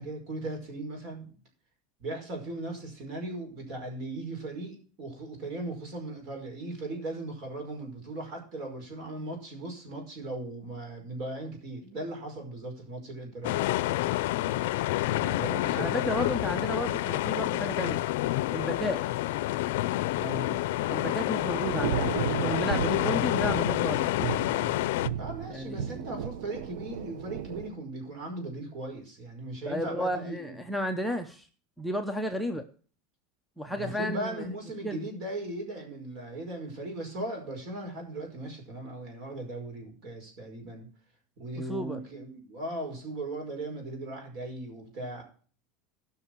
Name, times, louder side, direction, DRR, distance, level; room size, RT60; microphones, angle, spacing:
voice 1, 0.0-1.3 2.0-13.8 15.4-16.2 20.1-20.6 25.1-30.6 33.6-40.9 41.4-45.2, right 2 dB, 40° right, 2 dB, 5.0 m, -38 dB
sound 1, 13.4-25.1, left 16 dB, 75° left, 0.5 m, -28 dB
voice 2, 15.7-18.0 18.5-19.0 20.9-24.1 25.5-26.0 29.7-31.5 31.8-32.6 33.6-34.3 34.8-35.0 41.7-42.0, equal, ahead, 7 dB, 0.7 m, -33 dB
Thunder / Rain, 20.3-27.7, right 9 dB, 80° right, 0.8 m, -35 dB
16.5 x 5.9 x 4.6 m, 0.41 s
supercardioid pair, 160°, 0 cm